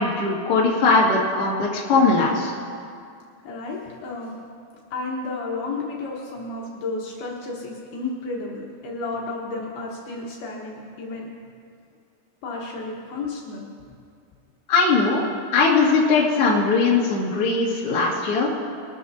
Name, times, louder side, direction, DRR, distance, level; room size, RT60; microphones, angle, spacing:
voice 1, 0.0-2.5 14.7-15.2 15.5-18.5, left 3 dB, 40° left, -5 dB, 2.2 m, -20 dB
voice 2, 3.4-4.4 4.9-11.3 12.4-13.7, left 3 dB, 70° left, -2 dB, 2.9 m, -32 dB
23.5 x 13.0 x 2.8 m, 2.3 s
omnidirectional pair, 5.2 m